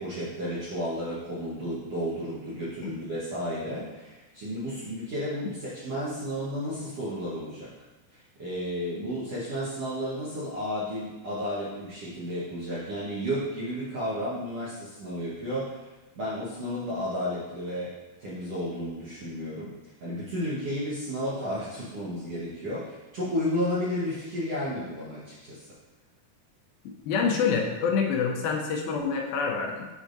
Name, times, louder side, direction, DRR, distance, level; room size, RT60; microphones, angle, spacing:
voice 1, 0.0-7.7 8.1-15.9 16.2-25.7, equal, 60° right, -9 dB, 1.6 m, -32 dB
voice 2, 26.9-29.9, left 5 dB, 80° left, 1 dB, 2.3 m, -27 dB
8.1 x 6.2 x 2.6 m, 1.1 s
omnidirectional pair, 4.5 m